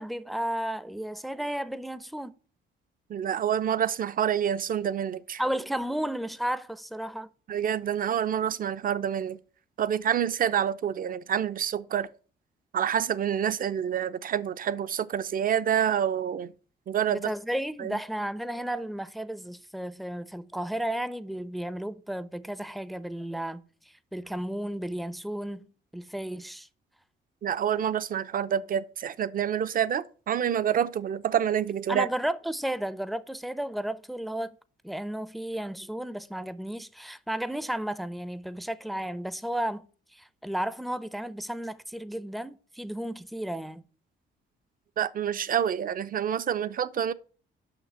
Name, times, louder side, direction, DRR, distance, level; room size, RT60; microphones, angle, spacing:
voice 1, 0.0-2.4 5.4-7.3 17.1-23.6 24.1-26.7 31.9-34.6 34.8-39.8 40.1-43.8, right 1 dB, ahead, 0.5 m, -33 dB
voice 2, 3.1-5.4 7.5-9.4 9.8-12.1 12.7-16.5 16.9-17.3 17.8-18.0 27.4-32.1 45.0-47.1, right 9 dB, 45° right, 0.5 m, -27 dB
5.9 x 5.8 x 5.5 m
cardioid pair, 90°, 20 cm